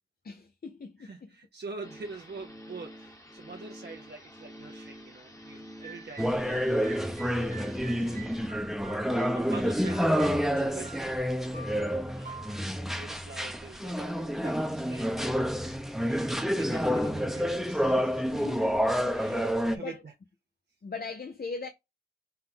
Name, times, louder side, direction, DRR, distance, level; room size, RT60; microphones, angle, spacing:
voice 1, 0.2-1.1 18.3-18.8 19.1-20.0 20.8-21.7, left 4 dB, 70° left, 0.6 m, -40 dB
voice 2, 1.0-8.2 9.3-11.6 12.1-12.4 12.9-15.4 16.1-20.1, right 4 dB, 80° right, 0.6 m, -46 dB
sound 1, 1.8-8.5, equal, 20° left, 1.0 m, -47 dB
sound 2, 5.8-13.8, right 5 dB, 50° right, 1.0 m, -48 dB
sound 3, 6.2-19.8, equal, ahead, 0.6 m, -28 dB
5.6 x 2.2 x 3.7 m
wide cardioid pair, 50°, 17 cm